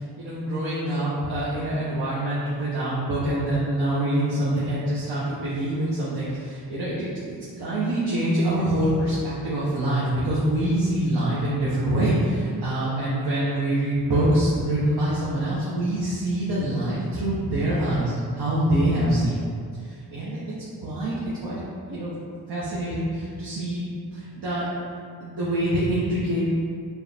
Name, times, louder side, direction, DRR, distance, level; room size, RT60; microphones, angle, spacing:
voice 1, 0.2-19.4 19.8-20.4 20.8-21.1 21.4-21.6 21.9-22.1 22.5-24.7 25.2-26.5, right 1 dB, 85° right, -9 dB, 1.0 m, -25 dB
4.5 x 3.0 x 3.4 m, 2.2 s
wide cardioid pair, 90°, 38 cm